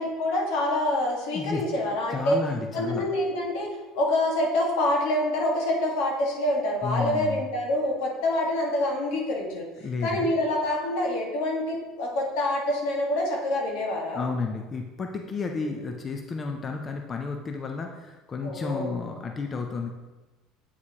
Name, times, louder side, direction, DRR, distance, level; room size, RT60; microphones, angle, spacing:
voice 1, 0.0-2.4 2.7-9.7 10.0-14.3 15.5-15.7 18.4-18.9, left 1 dB, 75° left, -1 dB, 1.5 m, -26 dB
voice 2, 1.3-1.6 2.1-3.1 6.8-7.5 9.8-10.3 14.1-19.9, left 4 dB, 25° left, 3 dB, 0.4 m, -32 dB
8.2 x 4.8 x 2.8 m, 1.2 s
cardioid pair, 150°, 0 cm